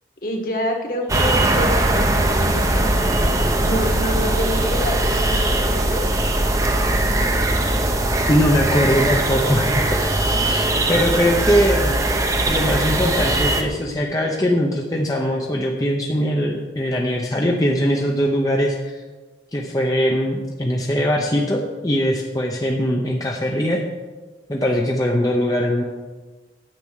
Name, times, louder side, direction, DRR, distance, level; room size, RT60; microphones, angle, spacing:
voice 1, 0.2-6.0 10.3-10.8, equal, 50° left, 2 dB, 2.0 m, -28 dB
sound 1, 1.1-13.6, right 1 dB, 20° right, 0.8 m, -20 dB
voice 2, 8.3-10.1 10.5-12.0 12.5-19.0 19.5-23.8 24.5-25.8, equal, 20° left, 0 dB, 0.8 m, -21 dB
10.5 x 6.0 x 8.2 m, 1.3 s
head